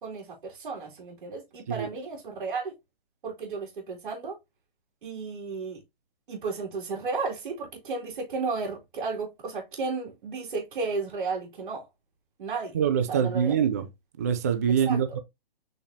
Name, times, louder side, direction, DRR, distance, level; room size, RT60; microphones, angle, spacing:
voice 1, 0.0-2.7 3.2-4.4 5.0-5.8 6.3-11.9 12.4-12.8 13.1-13.5 14.9-15.0, right 4 dB, 60° right, 2.9 m, -33 dB
voice 2, 12.7-13.9 14.2-15.2, right 8 dB, 15° right, 0.4 m, -24 dB
7.3 x 5.2 x 2.8 m
hypercardioid pair, 165°, 29 cm